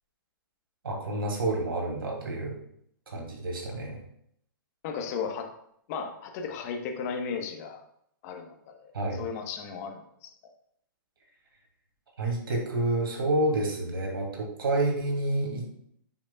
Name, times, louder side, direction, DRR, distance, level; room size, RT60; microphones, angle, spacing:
voice 1, 0.8-2.6 3.1-4.0 8.9-9.2 12.2-15.7, right 2 dB, 80° right, -1 dB, 2.9 m, -29 dB
voice 2, 4.8-5.5 5.9-7.8 8.2-8.9 9.2-10.3, left 6 dB, 45° left, 4 dB, 1.3 m, -35 dB
9.0 x 6.4 x 2.4 m, 0.71 s
hypercardioid pair, 135°, 12 cm